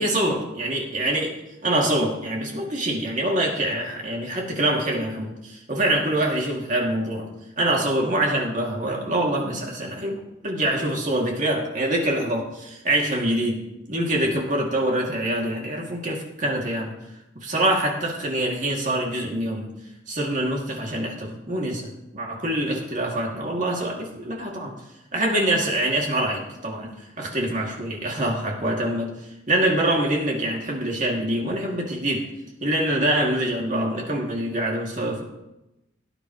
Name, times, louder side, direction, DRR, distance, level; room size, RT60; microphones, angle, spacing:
voice 1, 0.0-1.4 1.6-7.3 7.6-17.0 17.4-19.7 20.1-24.7 25.1-29.1 29.5-32.2 32.6-35.2, right 1 dB, 45° right, -1 dB, 2.6 m, -25 dB
18.0 x 9.5 x 3.2 m, 0.91 s
head